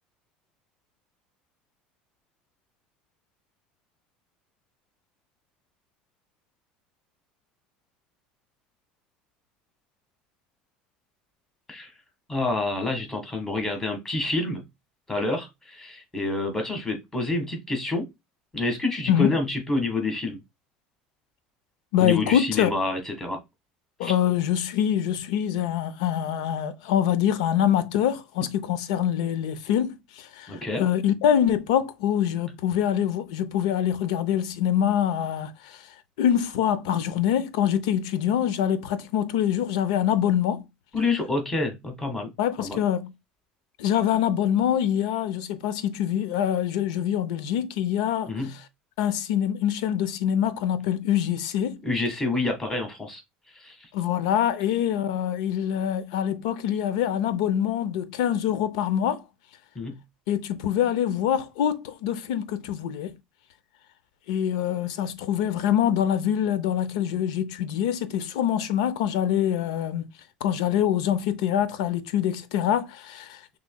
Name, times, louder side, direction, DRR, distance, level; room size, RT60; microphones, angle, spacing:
voice 1, 12.3-14.6 15.1-18.0 18.5-20.4 22.0-23.4 24.0-24.1 30.5-30.8 40.9-42.3 42.6-42.8 48.3-48.5 51.8-53.2 53.5-53.8 59.7-60.0, left 2 dB, 15° left, 1.6 m, -28 dB
voice 2, 21.9-22.7 24.0-35.9 36.2-40.7 42.4-43.1 43.8-48.6 49.0-51.8 53.9-59.2 60.3-63.1 64.3-70.1 70.4-73.6, left 10 dB, 85° left, 0.6 m, -25 dB
6.1 x 3.2 x 2.2 m
supercardioid pair, 110°, 4 cm